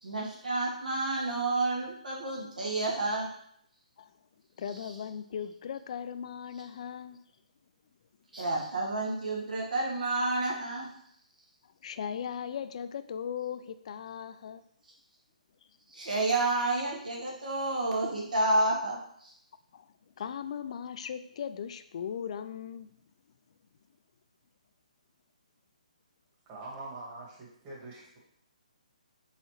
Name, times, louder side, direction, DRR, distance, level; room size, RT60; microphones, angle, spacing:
voice 1, 0.0-3.3 8.3-10.9 15.9-19.3, right 2 dB, 85° right, -3 dB, 1.6 m, -30 dB
voice 2, 4.6-7.2 11.6-14.6 19.7-19.9 20.2-22.9, left 8 dB, 50° left, 11 dB, 0.3 m, -38 dB
voice 3, 26.5-28.2, right 2 dB, 25° right, -5 dB, 1.6 m, -44 dB
4.0 x 3.9 x 3.1 m, 0.69 s
hypercardioid pair, 145°, 4 cm